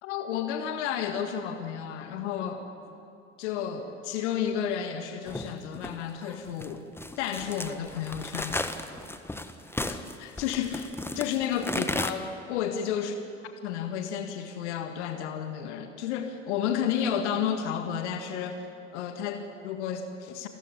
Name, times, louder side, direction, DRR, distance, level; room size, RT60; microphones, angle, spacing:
voice 1, 0.0-2.7 3.4-6.8 7.2-8.7 9.9-13.2 13.6-18.7 18.9-20.5, left 8 dB, 70° left, 6 dB, 1.8 m, -32 dB
sound 1, 5.3-12.1, left 2 dB, 5° left, 1.5 m, -35 dB
28.0 x 14.5 x 9.8 m, 2.6 s
figure-of-eight pair, 65°, 36 cm